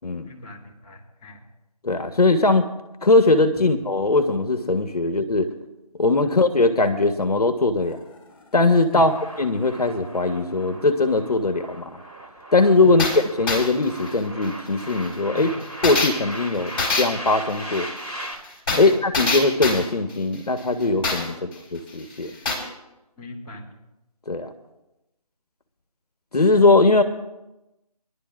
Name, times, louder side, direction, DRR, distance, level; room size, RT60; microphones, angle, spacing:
voice 1, 0.3-1.4 3.6-3.7 6.2-6.3 8.9-9.1 12.8-13.0 15.3-15.5 18.7-18.9 21.3-21.4 23.2-23.6, left 2 dB, 10° left, -10 dB, 2.3 m, -38 dB
voice 2, 1.8-2.6 3.0-5.5 6.0-8.0 8.5-12.0 12.5-15.5 15.8-16.7 17.0-17.9 18.7-22.4 24.3-24.5 26.3-27.0, left 3 dB, 70° left, 8 dB, 1.2 m, -20 dB
sound 1, 7.9-8.0 8.4-8.5 13.0-21.5 21.9-22.0 22.2-22.6, left 3 dB, 35° left, 4.8 m, -25 dB
sound 2, 9.0-18.3, right 1 dB, 15° right, 2.7 m, -38 dB
24.0 x 11.5 x 2.5 m, 0.96 s
figure-of-eight pair, 160°, 21 cm